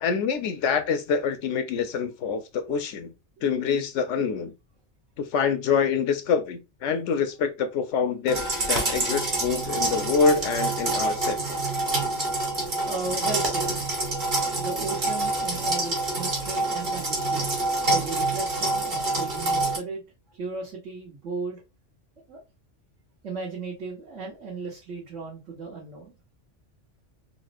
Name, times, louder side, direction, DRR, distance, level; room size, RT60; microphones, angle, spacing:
voice 1, 0.0-3.1 3.4-4.5 5.2-11.7, left 6 dB, 75° left, 0.9 m, -26 dB
sound 1, 8.3-19.8, right 2 dB, 45° right, 1.2 m, -27 dB
voice 2, 12.3-13.8 14.4-17.5 17.9-20.0 20.3-21.6 22.3-22.4 23.2-26.2, right 4 dB, 75° right, 1.7 m, -36 dB
4.1 x 2.1 x 2.5 m
omnidirectional pair, 1.3 m